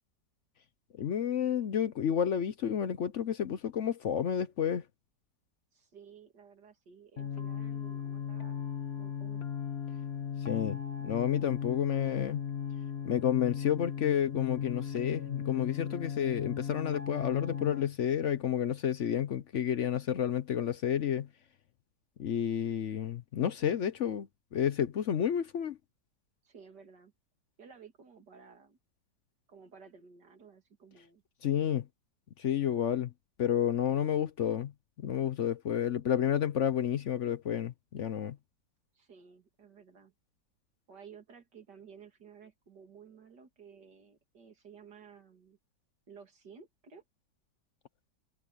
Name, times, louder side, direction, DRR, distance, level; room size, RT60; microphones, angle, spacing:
voice 1, 0.9-4.8 10.5-12.4 13.0-21.3 22.2-25.8 31.4-31.9 32.4-33.1 33.4-34.7 35.0-38.4, left 9 dB, 60° left, 0.8 m, -30 dB
voice 2, 5.7-8.7 8.9-9.4 26.4-27.1 27.6-28.8 29.5-31.2 38.9-40.1 40.9-45.6 46.1-47.0, right 6 dB, 70° right, 3.1 m, -55 dB
sound 1, 7.2-17.8, left 8 dB, 40° left, 1.7 m, -37 dB
omnidirectional pair, 1.9 m